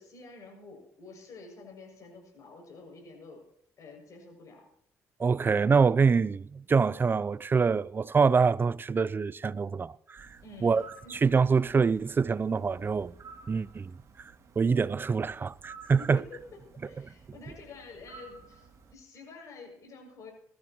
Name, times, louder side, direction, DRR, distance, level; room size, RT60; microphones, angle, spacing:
voice 1, 0.0-3.4 3.8-4.7 10.4-11.2 15.8-20.3, left 3 dB, 55° left, 7.0 m, -49 dB
voice 2, 5.2-10.8 11.1-13.1 13.5-16.2, right 5 dB, 35° right, 0.5 m, -25 dB
sound 1, 10.2-18.9, right 5 dB, 50° right, 2.7 m, -53 dB
20.5 x 13.5 x 3.1 m
supercardioid pair, 65°, 7 cm